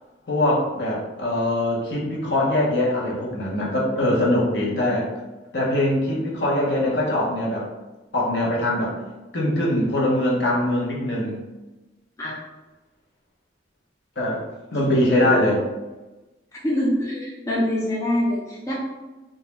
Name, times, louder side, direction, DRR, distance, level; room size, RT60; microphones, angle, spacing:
voice 1, 0.3-5.1 5.5-7.7 8.1-9.0 9.3-11.4 14.2-14.4 14.7-15.6, left 1 dB, 65° left, -4 dB, 0.7 m, -22 dB
voice 2, 14.9-15.4 16.6-18.7, left 1 dB, 15° left, -5 dB, 0.3 m, -25 dB
2.3 x 2.0 x 2.9 m, 1.1 s
head